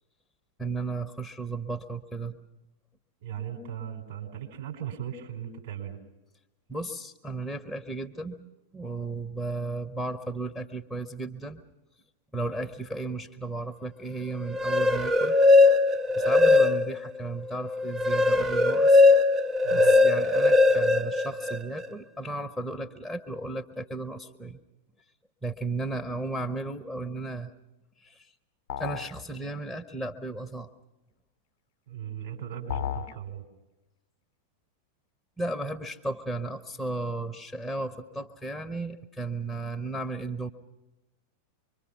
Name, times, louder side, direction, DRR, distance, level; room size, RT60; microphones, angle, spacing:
voice 1, 0.6-2.4 6.7-8.4 8.7-11.6 12.3-15.4 16.1-19.0 19.7-24.6 25.4-27.5 28.0-28.3 28.8-30.7 35.4-40.5, right 2 dB, 5° left, 6 dB, 1.0 m, -34 dB
voice 2, 3.2-6.0 19.6-20.0 31.9-33.4, right 9 dB, 55° right, 1 dB, 5.0 m, -38 dB
sound 1, 14.4-17.1 17.5-21.9, left 3 dB, 20° right, 0.8 m, -20 dB
sound 2, 28.7-29.2 32.7-33.2, left 10 dB, 50° left, 0.9 m, -33 dB
25.5 x 23.5 x 5.9 m, 1.0 s
figure-of-eight pair, 90°, 0 cm